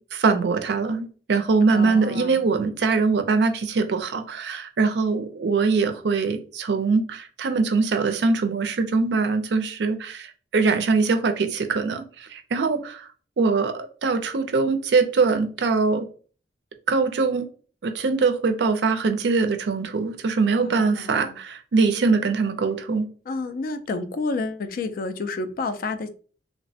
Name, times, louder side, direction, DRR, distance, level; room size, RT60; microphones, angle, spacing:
voice 1, 0.0-13.1 13.4-16.1 16.9-17.5 17.8-23.1, right 4 dB, 65° right, 0.4 m, -22 dB
voice 2, 1.7-2.4 20.6-21.4 23.3-26.1, left 3 dB, 50° left, 0.3 m, -30 dB
3.1 x 2.1 x 2.6 m
head